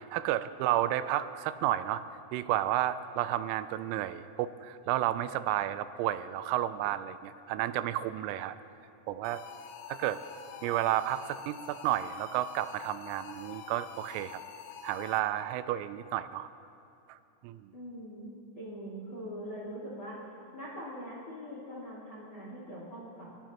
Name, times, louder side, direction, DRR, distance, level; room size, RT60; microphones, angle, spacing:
voice 1, 0.0-2.0 2.3-8.6 9.1-9.4 9.9-10.2 10.6-14.4 14.8-16.5 17.1-17.2 17.4-17.7, right 13 dB, 85° right, 12 dB, 3.2 m, -31 dB
sound 1, 9.2-15.5, left 8 dB, 85° left, 2.5 m, -47 dB
voice 2, 17.7-20.2 20.5-23.3, equal, 35° left, -6 dB, 2.2 m, -42 dB
30.0 x 14.0 x 3.0 m, 2.7 s
omnidirectional pair, 6.0 m